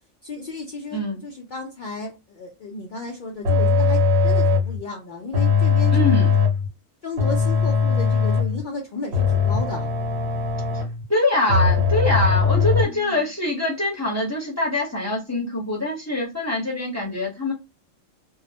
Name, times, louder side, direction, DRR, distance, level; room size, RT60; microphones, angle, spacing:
voice 1, 0.2-6.2 7.0-9.9 12.8-13.2 17.0-17.1, left 3 dB, 70° left, 0.4 m, -34 dB
voice 2, 0.9-1.2 5.9-6.3 11.1-17.5, left 1 dB, 15° left, 0.8 m, -24 dB
sound 1, 3.4-4.8 5.3-6.7 7.2-8.6 9.1-11.0 11.5-12.8, left 5 dB, 60° right, 1.1 m, -20 dB
2.3 x 2.1 x 2.7 m
omnidirectional pair, 1.3 m